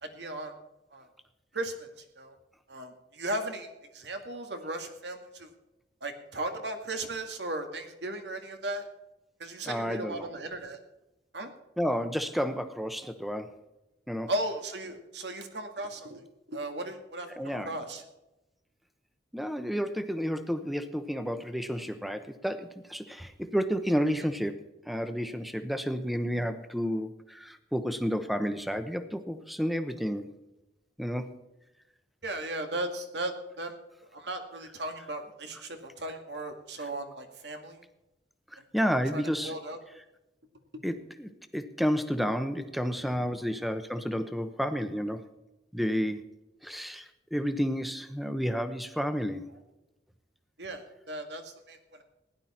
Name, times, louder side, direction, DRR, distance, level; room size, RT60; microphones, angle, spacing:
voice 1, 0.0-0.5 0.9-1.1 1.5-1.9 2.2-2.4 2.7-5.5 6.0-8.9 9.4-10.8 11.3-11.5 14.3-16.2 16.5-18.0 32.2-33.7 34.1-37.8 39.1-39.8 42.7-43.4 50.6-52.0, right 1 dB, 80° right, 5 dB, 2.1 m, -36 dB
voice 2, 9.7-10.3 11.8-13.5 14.1-14.3 17.4-17.7 19.3-24.6 24.9-30.3 31.0-31.2 38.5-39.5 40.8-45.2 45.7-46.3 46.6-49.5, equal, ahead, 9 dB, 0.9 m, -31 dB
16.5 x 11.0 x 4.4 m, 0.95 s
head